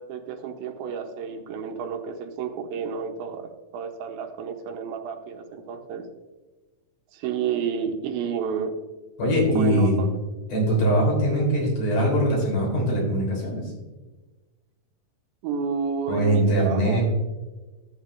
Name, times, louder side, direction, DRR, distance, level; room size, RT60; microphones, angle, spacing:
voice 1, 0.0-6.1 7.1-8.7 9.5-10.1 15.4-17.0, right 6 dB, 85° right, 6 dB, 2.7 m, -31 dB
voice 2, 9.2-10.0 10.5-13.6 16.1-17.0, right 1 dB, 65° left, -3 dB, 5.0 m, -22 dB
13.0 x 8.3 x 2.5 m, 1.2 s
omnidirectional pair, 4.2 m